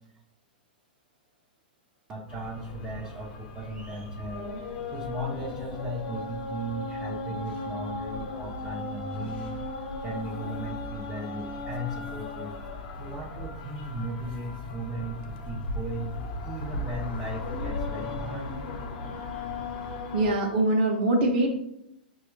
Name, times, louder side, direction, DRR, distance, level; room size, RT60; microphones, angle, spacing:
voice 1, 2.1-4.5 4.9-9.6 10.0-12.7 13.0-16.1 16.4-18.5, right 1 dB, 20° right, -1 dB, 0.6 m, -36 dB
sound 1, 2.3-20.3, left 3 dB, 55° left, 0.7 m, -36 dB
voice 2, 20.1-21.5, right 2 dB, 60° right, -1 dB, 0.8 m, -23 dB
5.7 x 2.3 x 3.1 m, 0.83 s
hypercardioid pair, 140°, 5 cm